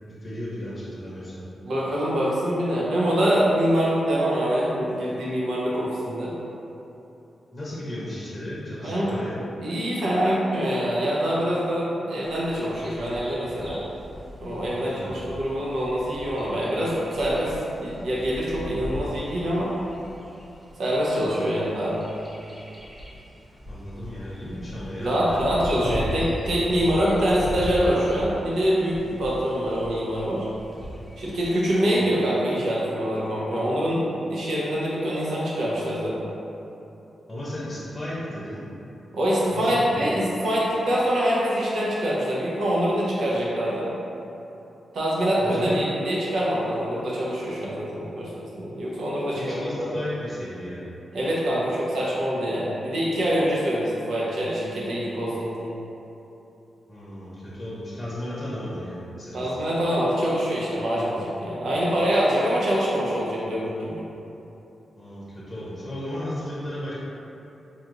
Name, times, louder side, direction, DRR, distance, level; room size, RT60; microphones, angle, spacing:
voice 1, 0.0-1.4 7.5-9.4 14.8-15.2 21.4-21.8 23.7-25.4 25.8-26.0 31.8-32.1 37.3-38.7 39.5-40.0 45.4-45.8 49.3-50.9 56.9-59.6 65.0-66.9, left 1 dB, 25° left, -8 dB, 0.8 m, -35 dB
voice 2, 1.6-6.3 8.8-9.2 9.6-13.8 14.4-19.7 20.8-22.0 25.0-30.5 31.2-36.3 39.1-43.9 44.9-49.9 51.1-55.7 59.3-64.0, equal, 80° right, -7 dB, 0.9 m, -25 dB
Bird vocalization bird call bird song, 12.2-31.6, left 1 dB, 15° right, 0.8 m, -39 dB
4.1 x 2.9 x 2.5 m, 3.0 s
cardioid pair, 75°, 0 cm